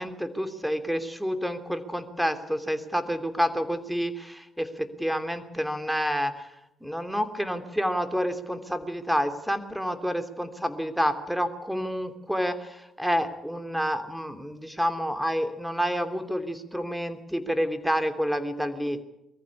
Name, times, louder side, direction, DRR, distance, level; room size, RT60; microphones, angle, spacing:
voice 1, 0.0-6.5 6.8-19.0, equal, ahead, 9 dB, 2.9 m, -29 dB
22.0 x 14.5 x 9.9 m, 0.86 s
hypercardioid pair, 50°, 0 cm